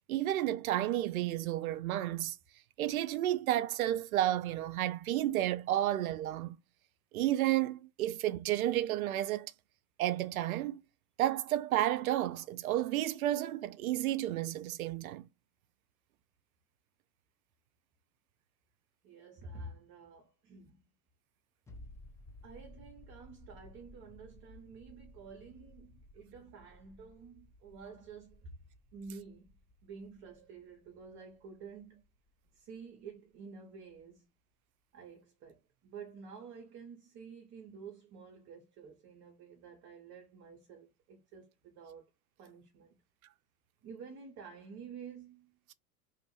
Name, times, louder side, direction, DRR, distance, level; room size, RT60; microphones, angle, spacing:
voice 1, 0.1-2.4 2.8-6.6 7.1-9.5 10.0-10.8 11.2-15.3, right 13 dB, 70° right, 0.5 m, -31 dB
voice 2, 19.0-20.9 22.4-28.6 28.9-32.0 32.5-34.3 34.9-42.1 42.4-43.0 43.8-45.6, right 5 dB, 35° right, 0.9 m, -50 dB
sound 1, 21.7-33.0 33.3-33.4, left 1 dB, 5° left, 0.5 m, -57 dB
2.8 x 2.5 x 3.0 m
figure-of-eight pair, 85°, 45 cm